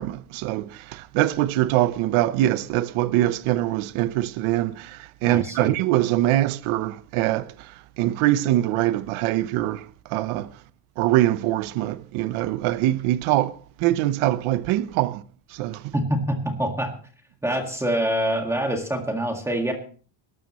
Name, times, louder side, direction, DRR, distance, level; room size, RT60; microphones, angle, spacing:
voice 1, 0.0-10.6 11.0-15.2 15.5-15.9, right 14 dB, 75° right, 0.9 m, -23 dB
voice 2, 5.3-5.7 15.9-16.2 16.4-16.9 17.4-19.7, right 1 dB, 5° right, 1.8 m, -25 dB
21.0 x 12.5 x 3.1 m
cardioid pair, 170°, 50 cm